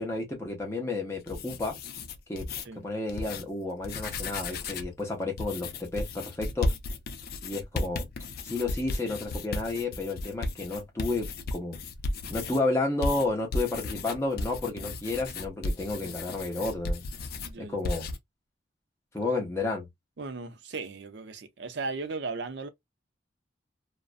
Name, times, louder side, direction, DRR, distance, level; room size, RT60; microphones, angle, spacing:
voice 1, 0.0-1.7 2.3-2.5 2.8-6.7 7.4-8.0 8.4-11.8 12.3-17.0 17.6-18.1 19.1-19.8, left 2 dB, 15° left, 0.8 m, -31 dB
sound 1, 1.1-2.6 3.1-3.4 3.8-4.9 5.4-12.6 13.0-17.5 17.8-18.2, left 2 dB, 50° left, 0.4 m, -34 dB
voice 2, 17.4-17.8 20.2-22.7, right 3 dB, 60° right, 0.5 m, -36 dB
2.5 x 2.1 x 2.4 m
head